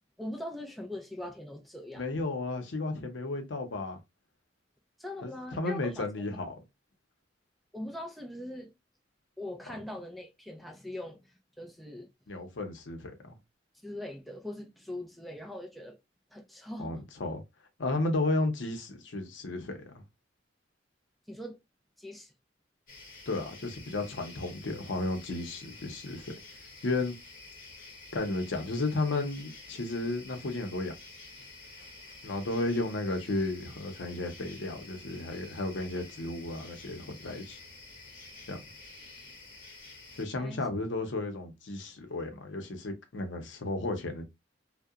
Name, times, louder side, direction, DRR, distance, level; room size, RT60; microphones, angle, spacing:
voice 1, 0.2-2.0 5.0-6.1 7.7-8.7 9.4-12.1 13.8-16.0 16.3-17.0 21.3-21.6 22.0-22.3 40.3-40.6, left 1 dB, ahead, 0.4 m, -41 dB
voice 2, 2.0-4.0 5.2-6.5 12.3-13.3 16.8-17.4 17.8-20.0 23.3-26.3 26.8-27.1 28.1-30.9 32.2-37.6 38.5-38.6 40.1-44.3, left 2 dB, 80° left, 0.7 m, -33 dB
sound 1, 22.9-40.2, left 3 dB, 50° left, 0.9 m, -50 dB
2.7 x 2.1 x 2.3 m
head